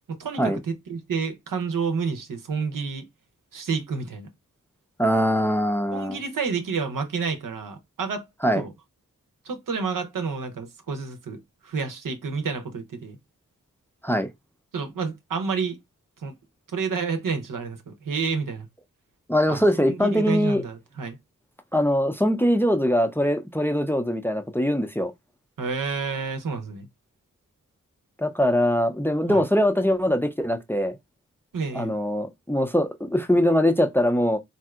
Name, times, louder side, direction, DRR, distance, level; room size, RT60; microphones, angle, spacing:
voice 1, 0.1-3.1 3.5-4.3 5.9-8.3 8.5-8.7 9.4-13.2 14.7-15.8 16.2-16.3 16.7-18.7 19.5-19.6 19.9-21.2 25.6-26.9 29.3-29.4 31.5-31.9, right 5 dB, 90° right, 0.7 m, -29 dB
voice 2, 5.0-6.2 8.4-8.6 14.0-14.3 19.3-20.6 21.7-25.1 28.2-30.9 31.7-34.4, equal, 5° left, 0.4 m, -22 dB
3.2 x 2.7 x 2.3 m
cardioid pair, 50°, 32 cm